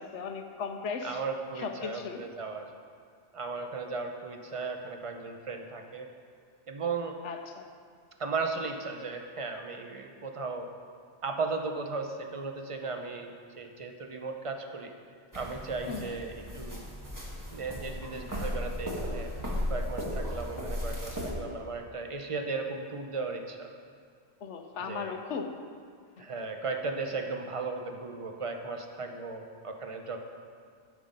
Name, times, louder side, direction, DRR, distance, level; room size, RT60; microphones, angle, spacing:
voice 1, 0.0-1.2 1.6-2.2 7.2-7.7 15.9-16.2 24.4-25.5 26.2-26.3, left 5 dB, 75° left, 6 dB, 1.1 m, -37 dB
voice 2, 1.0-2.7 3.3-6.1 6.7-7.2 8.2-10.7 11.2-14.9 15.3-16.8 17.5-19.3 19.7-23.7 24.8-25.2 26.2-30.2, right 4 dB, 35° right, 4 dB, 0.7 m, -36 dB
sound 1, 15.3-21.3, left 1 dB, 15° right, 1.3 m, -36 dB
9.3 x 7.5 x 5.2 m, 2.1 s
omnidirectional pair, 1.2 m